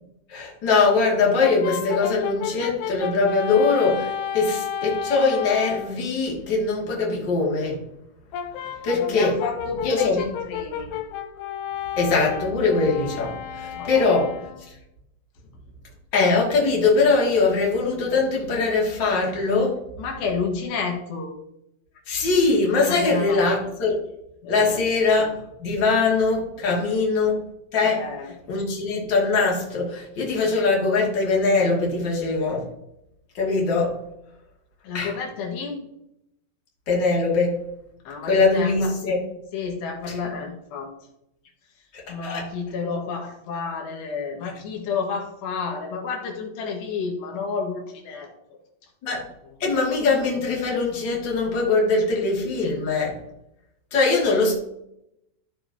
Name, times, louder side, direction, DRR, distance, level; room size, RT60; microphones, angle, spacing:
voice 1, 0.3-7.8 8.8-9.4 9.8-10.2 12.0-14.4 16.1-19.8 22.1-24.0 24.5-27.4 27.7-28.1 28.5-32.7 33.3-34.0 34.9-35.1 36.9-37.6 38.3-39.2 40.1-40.2 41.9-42.4 49.0-49.2 49.6-53.2 53.9-54.5, left 3 dB, 30° left, -3 dB, 2.3 m, -22 dB
Brass instrument, 1.4-6.0 8.3-14.7, left 9 dB, 90° left, 3.1 m, -32 dB
voice 2, 9.1-10.9 13.8-14.1 20.0-21.3 22.9-23.5 24.4-24.8 27.9-28.3 34.8-35.8 38.1-38.9 39.5-40.9 42.1-48.3, left 5 dB, 70° left, 1 dB, 3.6 m, -30 dB
12.0 x 7.7 x 2.9 m, 0.80 s
omnidirectional pair, 5.4 m